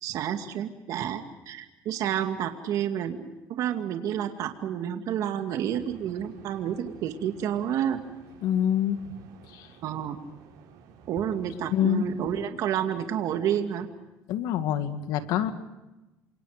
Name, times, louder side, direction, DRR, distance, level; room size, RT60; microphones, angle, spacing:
voice 1, 0.0-8.0 9.8-10.2 11.1-13.9, right 9 dB, 60° right, 5 dB, 2.3 m, -30 dB
sound 1, 5.7-12.4, right 6 dB, 80° right, 6.8 m, -53 dB
voice 2, 8.4-9.0 9.5-9.7 11.7-12.1 14.3-15.5, left 10 dB, 80° left, 9 dB, 2.1 m, -26 dB
28.5 x 26.5 x 5.1 m, 1.0 s
cardioid pair, 135°, 7 cm